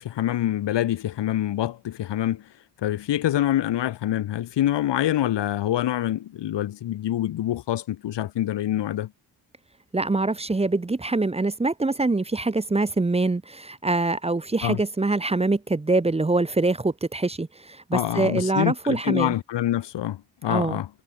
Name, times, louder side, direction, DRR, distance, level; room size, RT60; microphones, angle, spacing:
voice 1, 0.0-2.4 2.8-9.1 14.6-14.8 17.9-20.9, left 12 dB, 80° left, 1.9 m, -26 dB
voice 2, 9.9-19.3 20.5-20.8, right 2 dB, 15° right, 1.0 m, -24 dB
cardioid pair, 125°, 41 cm